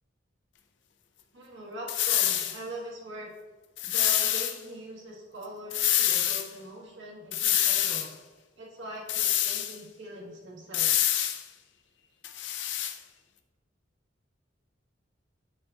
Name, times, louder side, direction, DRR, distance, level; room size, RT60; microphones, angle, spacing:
voice 1, 1.3-3.3 3.8-8.1 8.6-11.1, right 1 dB, 80° right, -4 dB, 1.6 m, -42 dB
sound 1, 1.9-2.6 3.8-4.5 5.7-6.5 7.3-8.1 9.1-9.8 10.7-11.4 12.2-12.9, left 11 dB, 70° left, 0.5 m, -26 dB
7.1 x 6.2 x 2.5 m, 1.2 s
head